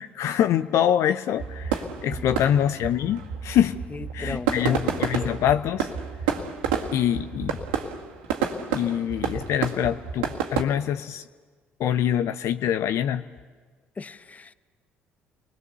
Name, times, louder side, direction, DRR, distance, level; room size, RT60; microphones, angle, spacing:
voice 1, 0.0-3.8 4.1-5.9 6.9-7.6 8.7-11.2 11.8-13.2, left 10 dB, 65° left, 10 dB, 0.7 m, -25 dB
sound 1, 1.4-10.6, right 7 dB, 80° right, 1.9 m, -30 dB
voice 2, 2.2-2.5 3.9-5.4 14.0-14.5, left 4 dB, 30° left, 13 dB, 1.0 m, -37 dB
29.5 x 21.0 x 6.9 m, 1.4 s
hypercardioid pair, 55°, 5 cm